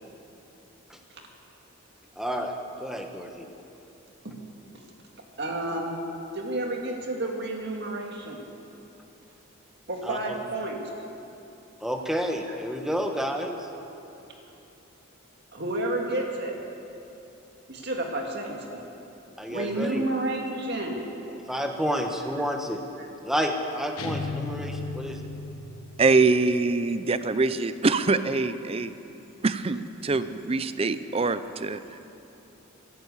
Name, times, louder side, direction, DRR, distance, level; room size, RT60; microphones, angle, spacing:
voice 1, 2.2-3.5 10.0-10.4 11.8-13.6 19.4-20.0 21.5-22.8 23.2-25.2, equal, ahead, 3 dB, 1.1 m, -30 dB
voice 2, 5.4-6.0 6.3-8.4 9.9-10.9 15.5-16.6 17.7-18.8 19.5-21.0 23.0-23.1, right 2 dB, 50° right, 1 dB, 2.1 m, -30 dB
sound 1, 24.0-26.0, left 3 dB, 85° left, 1.2 m, -34 dB
voice 3, 26.0-28.9 29.4-31.8, right 3 dB, 25° right, 13 dB, 0.5 m, -24 dB
14.5 x 11.0 x 8.3 m, 2.9 s
head